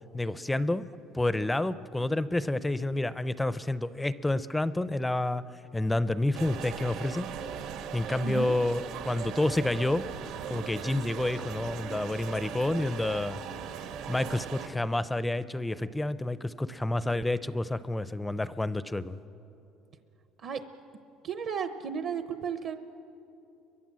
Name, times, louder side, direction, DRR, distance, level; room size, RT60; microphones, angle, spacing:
voice 1, 0.1-0.8 1.1-5.4 5.7-7.3 7.9-10.1 10.5-13.4 14.1-19.2, left 2 dB, 5° left, 15 dB, 0.5 m, -29 dB
sound 1, 6.3-14.7, right 7 dB, 70° right, 1.6 m, -39 dB
voice 2, 8.2-8.6 20.4-20.6 21.2-22.7, right 7 dB, 45° right, 9 dB, 0.9 m, -34 dB
29.0 x 23.5 x 7.5 m, 3.0 s
cardioid pair, 155°, 0 cm